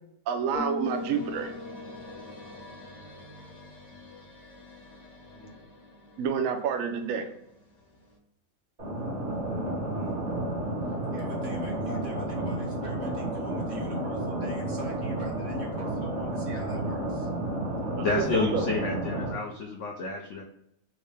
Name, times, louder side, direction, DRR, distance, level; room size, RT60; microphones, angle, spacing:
voice 1, 0.3-1.5 6.2-7.2 18.0-18.7, right 7 dB, 70° right, 5 dB, 0.8 m, -29 dB
Bass guitar, 0.5-2.9, left 3 dB, 60° left, 1.5 m, -38 dB
sound 1, 0.8-8.2, left 2 dB, 35° left, 0.7 m, -49 dB
voice 2, 5.1-5.6 9.5-10.2 10.9-17.3, right 1 dB, 45° right, -3 dB, 1.2 m, -44 dB
sound 2, 8.8-19.3, right 1 dB, 25° right, 1.2 m, -31 dB
voice 3, 18.0-20.4, left 4 dB, 80° left, 0 dB, 0.6 m, -30 dB
3.7 x 2.1 x 3.2 m, 0.78 s
omnidirectional pair, 1.8 m